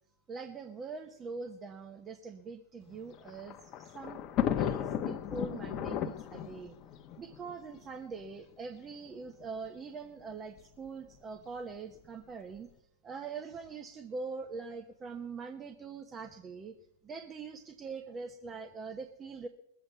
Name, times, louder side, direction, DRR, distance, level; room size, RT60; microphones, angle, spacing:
voice 1, 0.3-4.2 4.6-6.7 7.2-12.7 13.0-16.7 17.0-19.5, right 4 dB, 25° right, 6 dB, 1.1 m, -43 dB
Thunder, 2.9-8.2 9.1-9.2 9.4-9.5 10.6-10.9, left 10 dB, 40° left, 1.0 m, -35 dB
20.5 x 8.0 x 5.5 m, 0.78 s
hypercardioid pair, 115°, 0 cm